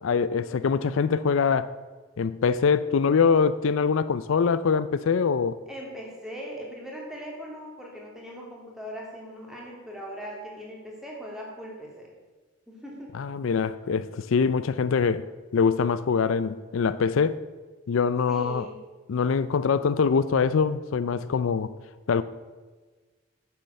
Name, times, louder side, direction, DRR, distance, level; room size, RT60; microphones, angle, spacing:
voice 1, 0.0-1.7 2.2-5.6 13.1-15.3 15.5-17.4 17.9-18.7 19.1-21.7 22.1-22.2, left 5 dB, 80° left, 0.4 m, -23 dB
voice 2, 5.7-12.1 12.7-13.1 18.3-18.8, equal, 5° right, 2.4 m, -40 dB
9.4 x 7.5 x 6.7 m
head